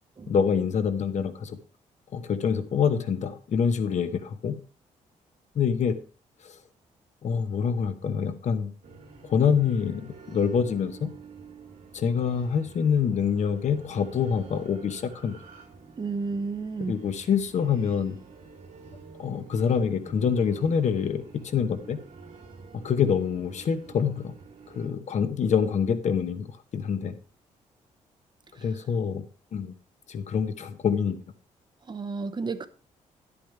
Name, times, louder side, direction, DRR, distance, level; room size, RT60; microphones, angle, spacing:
voice 1, 0.3-1.6 2.1-4.6 5.5-6.0 6.4-6.5 7.2-8.7 9.2-11.1 11.9-15.4 16.9-18.2 19.2-22.0 22.7-24.3 24.7-26.5 26.7-27.2 28.6-29.2 29.5-29.7 30.1-31.2, left 7 dB, 60° left, 1.1 m, -26 dB
sound 1, 8.8-24.9, right 5 dB, 80° right, 2.6 m, -48 dB
voice 2, 16.0-17.0 28.6-28.7 31.9-32.7, right 4 dB, 35° right, 0.9 m, -32 dB
10.5 x 8.5 x 3.4 m
cardioid pair, 85°, 13 cm